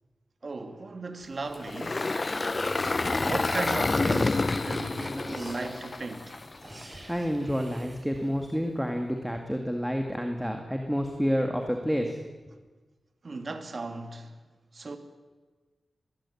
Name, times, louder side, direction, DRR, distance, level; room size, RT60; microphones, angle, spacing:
voice 1, 0.4-2.1 3.1-6.4 13.2-14.4 14.7-15.0, right 3 dB, 50° right, 2.4 m, -36 dB
Engine, 1.5-6.8, left 3 dB, 35° left, 0.7 m, -28 dB
sound 1, 2.0-8.3, right 1 dB, 30° right, 5.4 m, -51 dB
voice 2, 7.1-12.2, equal, ahead, 2.1 m, -29 dB
22.5 x 15.5 x 10.0 m
wide cardioid pair, 80°, 0 cm